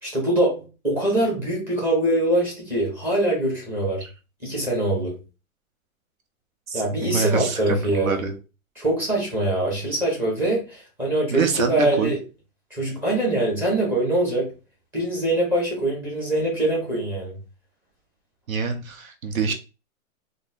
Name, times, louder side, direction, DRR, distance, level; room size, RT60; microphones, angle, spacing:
voice 1, 0.0-4.1 4.4-5.2 6.7-8.2 8.8-12.2 12.7-14.5 14.9-17.4, right 1 dB, 5° right, 0.5 m, -23 dB
voice 2, 6.7-8.4 11.3-12.1 18.5-19.5, right 5 dB, 90° right, 0.9 m, -25 dB
3.8 x 2.1 x 2.5 m
hypercardioid pair, 155°, 40 cm